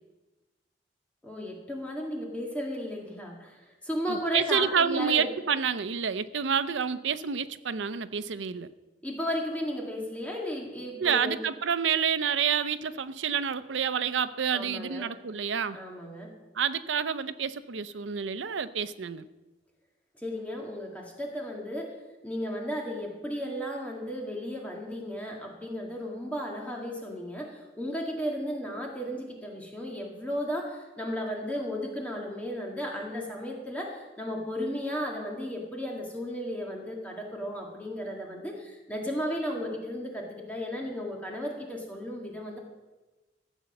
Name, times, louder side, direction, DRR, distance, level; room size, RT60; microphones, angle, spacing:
voice 1, 1.2-5.3 9.0-11.4 14.5-15.1 15.7-16.3 20.2-21.9 22.2-42.6, equal, 10° left, -1 dB, 1.8 m, -34 dB
voice 2, 4.1-8.7 11.0-15.8 16.5-19.3, right 7 dB, 85° right, 13 dB, 0.6 m, -28 dB
14.5 x 8.1 x 6.6 m, 1.2 s
head